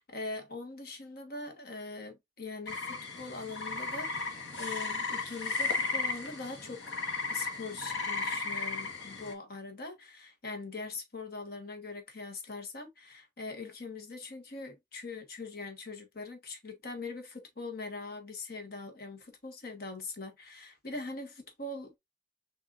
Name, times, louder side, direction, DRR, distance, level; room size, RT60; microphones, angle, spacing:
voice 1, 0.0-7.0 7.3-22.0, left 3 dB, 55° left, 1.2 m, -42 dB
sound 1, 2.7-9.3, left 4 dB, 90° left, 1.3 m, -35 dB
6.1 x 2.7 x 2.4 m
head